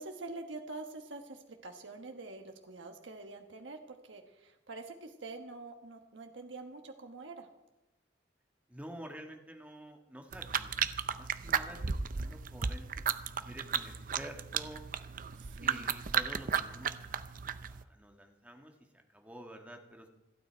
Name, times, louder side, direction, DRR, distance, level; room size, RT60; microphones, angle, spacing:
voice 1, 0.0-7.5 15.3-15.9, right 3 dB, 80° right, 4 dB, 1.4 m, -46 dB
voice 2, 8.7-12.9 13.4-14.8 15.6-20.1, equal, 10° right, 3 dB, 1.5 m, -49 dB
sound 1, 10.3-17.8, right 7 dB, 50° right, 0.6 m, -35 dB
28.0 x 9.3 x 4.5 m, 1.0 s
head